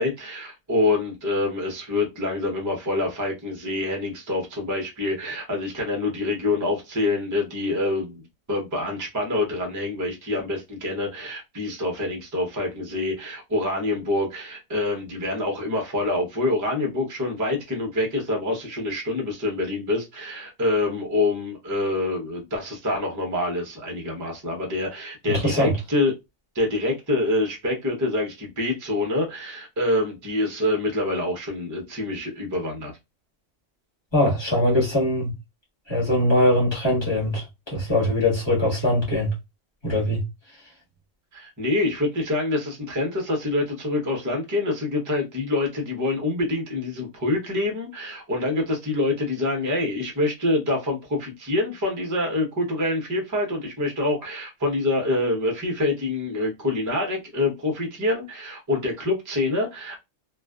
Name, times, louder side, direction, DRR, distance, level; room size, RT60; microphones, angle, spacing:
voice 1, 0.0-8.2 8.5-26.1 26.5-32.9 41.3-60.0, left 2 dB, 20° right, 0.5 m, -26 dB
voice 2, 25.3-25.7 34.1-35.3 35.9-39.3 39.8-40.2, left 1 dB, 20° left, 1.1 m, -22 dB
2.4 x 2.4 x 2.2 m
omnidirectional pair, 1.4 m